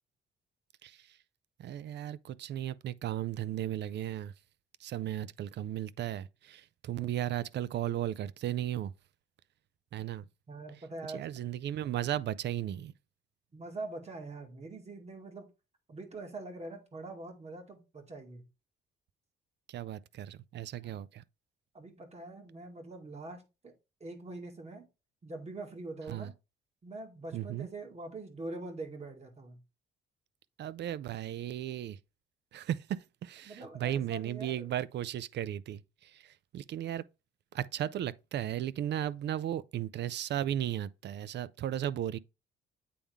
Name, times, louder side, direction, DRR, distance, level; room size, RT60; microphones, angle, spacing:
voice 1, 1.6-4.3 4.8-8.9 9.9-10.2 11.1-12.9 19.7-21.2 26.1-26.3 27.3-27.7 30.6-32.0 32.5-37.0 37.5-42.2, right 11 dB, 60° right, 0.5 m, -35 dB
voice 2, 10.5-11.3 13.5-15.5 15.9-18.5 20.8-21.0 21.7-23.7 24.0-24.9 25.2-26.3 26.8-29.6 33.4-34.7, right 2 dB, 35° right, 2.1 m, -44 dB
8.5 x 3.7 x 3.5 m
cardioid pair, 90°, 20 cm